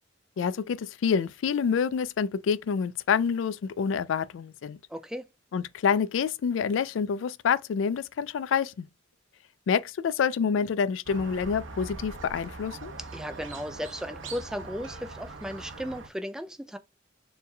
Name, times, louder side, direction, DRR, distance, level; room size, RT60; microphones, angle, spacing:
voice 1, 0.4-4.8 5.5-8.9 9.7-12.9, left 6 dB, 85° left, 0.3 m, -27 dB
voice 2, 4.9-5.3 13.0-16.8, equal, 5° right, 0.3 m, -36 dB
Squeak, 11.1-16.1, right 3 dB, 90° right, 0.9 m, -42 dB
6.8 x 3.2 x 2.2 m
head